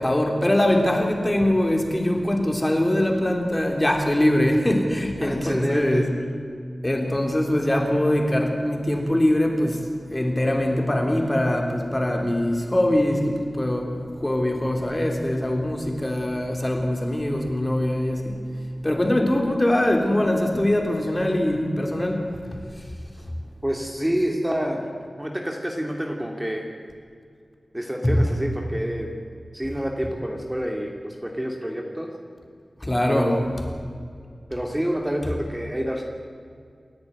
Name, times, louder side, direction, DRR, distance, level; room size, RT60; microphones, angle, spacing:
voice 1, 0.0-6.1 6.8-18.4 18.8-22.4 23.2-23.3 28.0-28.2 32.8-33.3, left 1 dB, 20° left, 2 dB, 3.6 m, -22 dB
voice 2, 5.2-6.1 23.6-24.9 25.2-26.7 27.7-29.2 29.5-32.1 33.1-33.5 34.5-36.0, equal, 10° right, 1 dB, 2.5 m, -28 dB
29.0 x 10.5 x 9.5 m, 2.2 s
wide cardioid pair, 70°, 0 cm